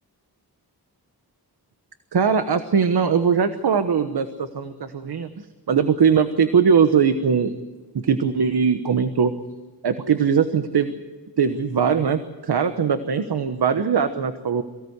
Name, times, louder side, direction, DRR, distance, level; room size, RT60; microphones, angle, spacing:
voice 1, 2.1-7.5 8.0-9.3 9.8-11.0 11.4-14.6, right 6 dB, 75° right, 9 dB, 1.2 m, -20 dB
23.5 x 17.0 x 8.1 m, 1.3 s
wide cardioid pair, 125°, 39 cm